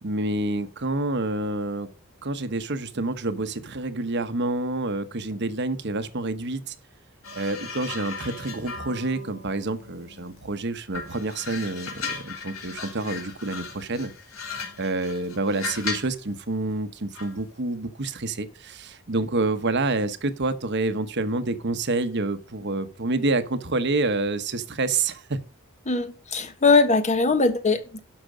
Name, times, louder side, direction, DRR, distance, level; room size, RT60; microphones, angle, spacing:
voice 1, 0.0-1.9 2.2-6.7 7.3-14.1 14.8-25.4, right 2 dB, 55° right, 1.1 m, -28 dB
sound 1, 7.2-10.5 10.9-16.2 17.1-17.4, left 5 dB, 75° left, 3.1 m, -37 dB
voice 2, 25.9-28.0, left 3 dB, 35° left, 1.3 m, -21 dB
12.0 x 6.1 x 5.1 m
head